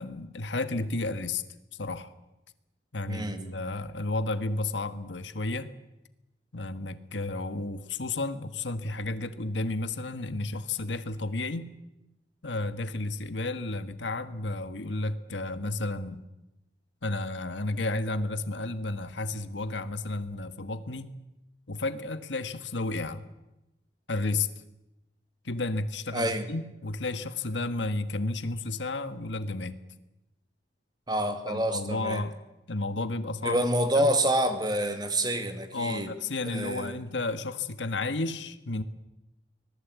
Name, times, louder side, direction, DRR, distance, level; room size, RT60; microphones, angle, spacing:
voice 1, 0.0-1.4 1.8-2.1 2.9-5.7 6.5-11.7 12.4-16.2 17.0-21.1 21.7-23.3 24.1-24.5 25.4-29.8 31.5-32.3 32.7-33.6 33.9-34.1 35.7-38.8, left 2 dB, 90° left, 10 dB, 1.5 m, -32 dB
voice 2, 3.1-3.4 26.1-26.5 31.1-32.2 33.4-36.1 36.4-37.0, right 1 dB, 25° right, 7 dB, 2.3 m, -27 dB
25.0 x 19.5 x 8.3 m, 0.96 s
head